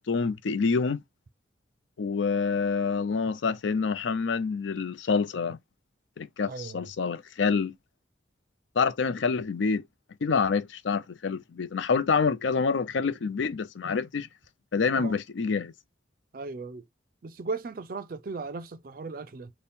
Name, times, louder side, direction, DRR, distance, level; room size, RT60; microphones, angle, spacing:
voice 1, 0.1-1.0 2.0-5.6 6.2-7.7 8.8-9.8 10.2-14.3 14.7-15.7, left 5 dB, 75° left, 0.5 m, -27 dB
voice 2, 6.5-6.9 14.9-15.1 16.3-16.8 17.2-19.5, right 4 dB, 45° right, 0.4 m, -37 dB
4.2 x 2.1 x 3.5 m
head